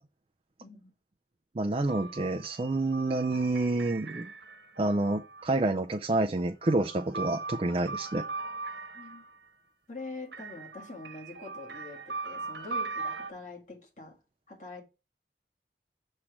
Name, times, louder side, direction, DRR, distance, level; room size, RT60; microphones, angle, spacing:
voice 1, 0.6-0.9 8.9-9.3 9.9-14.2 14.5-14.8, left 2 dB, 45° left, 1.9 m, -44 dB
voice 2, 1.6-4.3 4.8-8.2, right 2 dB, 30° right, 0.4 m, -28 dB
sound 1, 1.9-5.7 6.4-9.5 10.3-13.3, right 3 dB, 85° right, 1.1 m, -40 dB
7.3 x 3.2 x 5.8 m
head